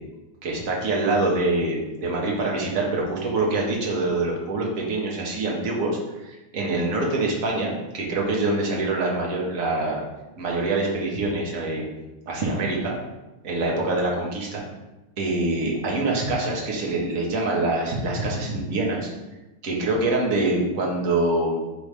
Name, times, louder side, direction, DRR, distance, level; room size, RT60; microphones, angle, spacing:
voice 1, 0.4-10.0 10.4-11.8 12.3-12.9 13.4-14.6 15.2-19.1 19.6-21.6, right 2 dB, 45° right, -2 dB, 1.4 m, -25 dB
8.2 x 3.5 x 3.3 m, 1.0 s
omnidirectional pair, 2.4 m